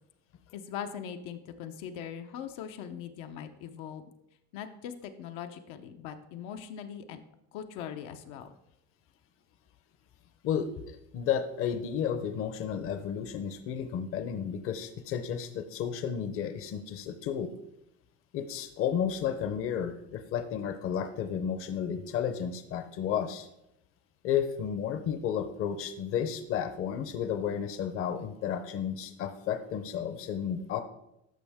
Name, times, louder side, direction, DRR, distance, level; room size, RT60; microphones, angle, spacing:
voice 1, 0.5-4.0 4.5-7.2 7.5-8.5, left 8 dB, 85° left, 7 dB, 0.8 m, -41 dB
voice 2, 10.4-17.5 18.3-23.5 24.2-30.8, left 8 dB, 50° left, 9 dB, 0.7 m, -32 dB
14.0 x 5.3 x 3.5 m, 0.84 s
cardioid pair, 155°, 29 cm